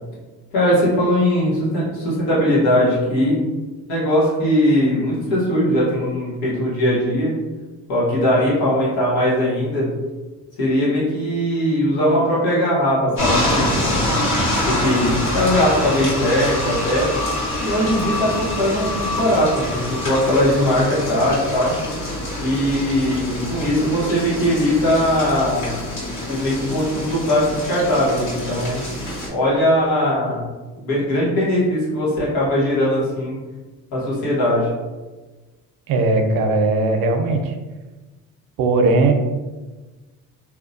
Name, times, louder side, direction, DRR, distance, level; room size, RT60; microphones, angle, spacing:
voice 1, 0.5-3.4 3.9-7.3 7.9-9.9 10.6-14.1 14.6-17.1 17.6-21.7 22.4-25.8 26.3-28.8 29.3-30.4 30.8-33.4 33.9-34.7, equal, 90° left, -7 dB, 1.2 m, -20 dB
sound 1, 13.2-29.3, left 1 dB, 60° left, 1.4 m, -25 dB
voice 2, 35.9-37.6 38.6-39.1, right 3 dB, 75° right, 4 dB, 0.6 m, -18 dB
2.8 x 2.2 x 2.6 m, 1.2 s
cardioid pair, 90°, 36 cm